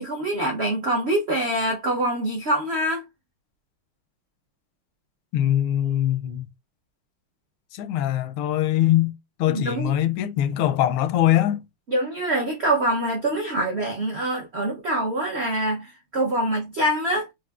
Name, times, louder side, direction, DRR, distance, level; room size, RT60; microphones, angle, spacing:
voice 1, 0.0-3.0 9.5-9.9 11.9-17.3, right 1 dB, 75° right, 0.5 m, -25 dB
voice 2, 5.3-6.5 7.7-9.1 9.4-11.6, left 12 dB, 85° left, 1.4 m, -22 dB
6.0 x 2.5 x 2.4 m
omnidirectional pair, 2.3 m